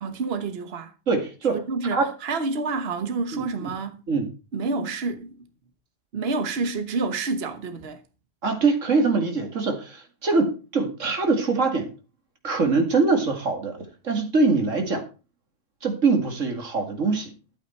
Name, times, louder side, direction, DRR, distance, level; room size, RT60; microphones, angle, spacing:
voice 1, 0.0-0.9 1.5-4.0 4.5-5.4 6.1-8.0, right 3 dB, 55° right, 1.4 m, -28 dB
voice 2, 1.1-1.6 1.9-2.1 3.3-3.7 4.1-4.3 8.4-11.9 12.4-15.1 15.8-17.3, right 4 dB, 90° right, 2.6 m, -23 dB
12.0 x 8.7 x 4.5 m
omnidirectional pair, 1.3 m